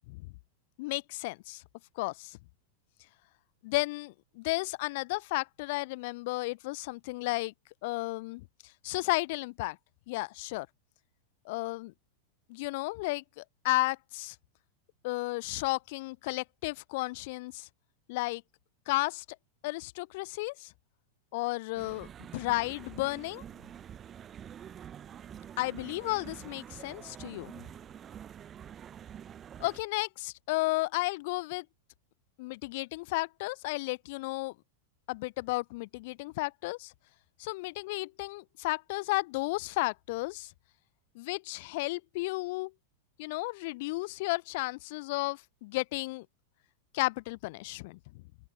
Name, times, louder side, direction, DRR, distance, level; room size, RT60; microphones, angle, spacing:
voice 1, 0.8-1.6 2.0-2.4 3.6-7.5 7.8-9.8 10.1-10.7 11.4-11.9 12.5-14.4 15.0-17.7 18.1-18.4 18.9-19.2 19.6-20.7 21.3-22.1 22.3-23.4 25.6-27.5 29.6-31.7 32.4-34.5 35.1-36.9 37.4-40.5 41.1-42.7 43.2-46.3 46.9-48.0, left 23 dB, 50° left, 0.5 m, -33 dB
sound 1, 21.7-29.8, right 9 dB, 25° right, 0.8 m, -47 dB
open air
figure-of-eight pair, 90°, 0 cm